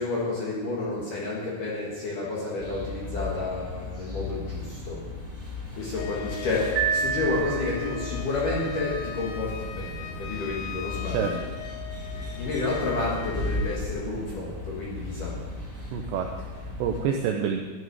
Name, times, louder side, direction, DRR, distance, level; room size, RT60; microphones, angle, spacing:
voice 1, 0.0-5.0 5.7-11.4 12.4-15.4, left 3 dB, 60° left, -5 dB, 2.3 m, -30 dB
sound 1, 2.6-17.0, left 2 dB, 10° right, 2.2 m, -36 dB
Wind instrument woodwind instrument, 5.9-13.8, left 9 dB, 85° left, 2.7 m, -40 dB
Piano, 6.8-8.0, right 8 dB, 75° right, 2.0 m, -28 dB
voice 2, 15.9-17.6, right 8 dB, 90° right, 2 dB, 2.5 m, -28 dB
12.0 x 10.0 x 4.7 m, 1.4 s
omnidirectional pair, 5.9 m